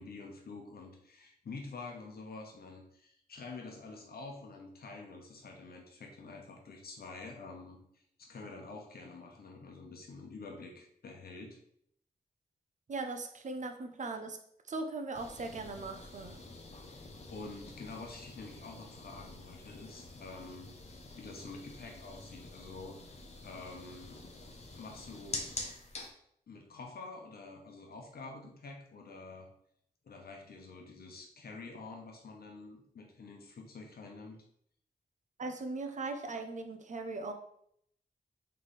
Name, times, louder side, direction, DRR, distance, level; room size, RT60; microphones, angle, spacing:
voice 1, 0.0-11.6 16.9-23.1 23.4-24.2 24.7-25.5 26.5-29.5 30.0-34.4, left 3 dB, 80° left, 2 dB, 0.9 m, -48 dB
voice 2, 12.9-14.4 14.7-16.4 35.4-37.3, right 3 dB, 50° right, 5 dB, 0.6 m, -39 dB
sound 1, 15.1-26.1, left 2 dB, 45° left, 0.7 m, -47 dB
3.3 x 3.3 x 4.1 m, 0.69 s
wide cardioid pair, 105°, 16 cm